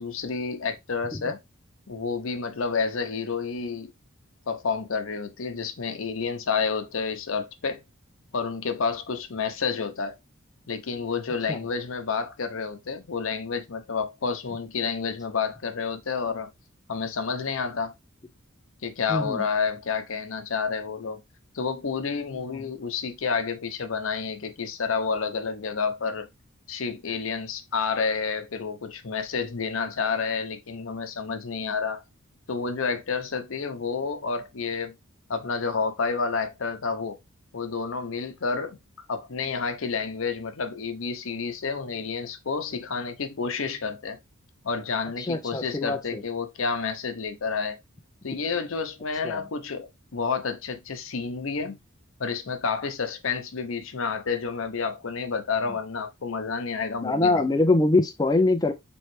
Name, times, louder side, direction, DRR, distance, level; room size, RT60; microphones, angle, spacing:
voice 1, 0.0-1.4 1.9-3.9 4.5-7.8 8.3-10.1 10.7-16.5 16.9-17.9 18.8-21.2 21.5-26.3 26.7-32.0 32.5-34.9 35.3-37.2 37.5-38.8 39.1-44.2 44.6-47.8 48.2-51.8 52.2-57.5, left 5 dB, 70° left, 0.7 m, -29 dB
voice 2, 19.1-19.4 45.2-46.2 49.2-49.4 57.0-58.7, left 2 dB, 20° left, 0.4 m, -23 dB
4.3 x 3.1 x 3.1 m
head